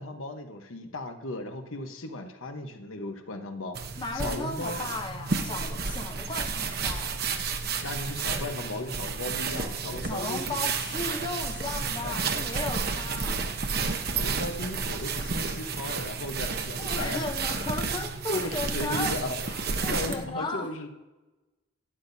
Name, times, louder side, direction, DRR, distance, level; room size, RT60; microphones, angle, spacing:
voice 1, 0.0-3.8 4.1-4.8 7.8-10.5 12.0-12.4 14.1-17.2 18.3-19.4 19.9-20.9, left 2 dB, 80° left, 5 dB, 1.0 m, -36 dB
sound 1, 3.7-20.2, right 5 dB, 50° right, 0.9 m, -31 dB
voice 2, 4.0-7.2 10.0-13.4 16.8-19.2 19.5-20.7, left 3 dB, 20° left, 4 dB, 0.7 m, -35 dB
12.0 x 10.0 x 2.7 m, 1.1 s
head